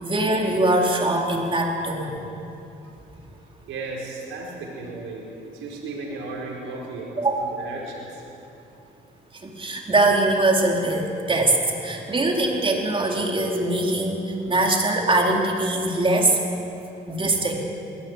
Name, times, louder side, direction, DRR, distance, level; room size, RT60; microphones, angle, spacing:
voice 1, 0.0-2.2 7.2-7.5 9.4-16.4 17.1-17.6, right 2 dB, 25° right, 0 dB, 4.4 m, -22 dB
voice 2, 3.7-8.1, right 3 dB, 90° right, -2 dB, 4.7 m, -35 dB
22.0 x 17.0 x 9.2 m, 2.8 s
cardioid pair, 90°, 20 cm